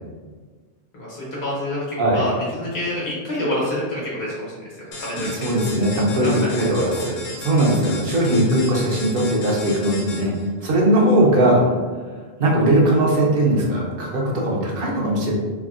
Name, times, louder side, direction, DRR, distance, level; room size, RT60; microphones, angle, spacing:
voice 1, 0.9-4.6 5.0-5.3 6.2-6.6 7.0-7.1 7.5-7.7, left 1 dB, 85° left, -6 dB, 1.3 m, -27 dB
sound 1, 4.9-10.5, left 2 dB, 60° left, 0.7 m, -35 dB
voice 2, 5.2-10.3 10.6-11.6 12.4-15.3, right 1 dB, 65° right, -2 dB, 0.8 m, -19 dB
3.3 x 2.1 x 2.4 m, 1.5 s
omnidirectional pair, 1.1 m